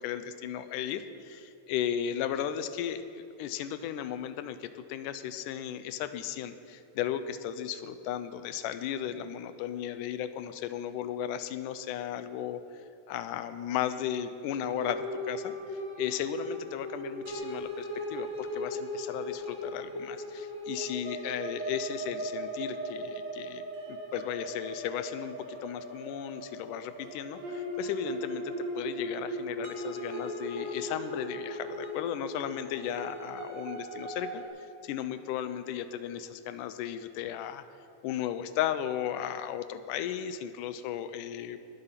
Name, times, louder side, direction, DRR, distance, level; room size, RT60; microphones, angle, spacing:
voice 1, 0.0-12.8 13.1-37.6 38.0-41.6, left 10 dB, 80° left, 11 dB, 2.2 m, -35 dB
sound 1, 14.6-34.5, equal, 55° right, 3.0 m, -38 dB
20.0 x 7.9 x 5.8 m, 2.7 s
omnidirectional pair, 3.7 m